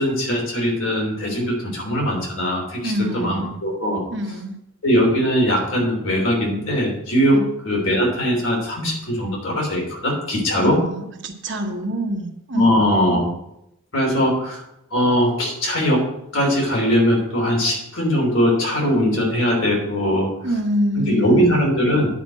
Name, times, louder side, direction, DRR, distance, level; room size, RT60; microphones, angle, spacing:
voice 1, 0.0-4.0 4.8-10.8 12.5-13.3 13.9-14.6 14.9-16.0 16.3-20.3 20.9-22.1, equal, 75° left, -1 dB, 3.2 m, -20 dB
voice 2, 2.8-3.6 4.1-4.6 7.3-7.5 10.5-12.7 20.4-21.6, equal, 55° right, 4 dB, 1.2 m, -26 dB
9.5 x 5.1 x 7.5 m, 0.84 s
head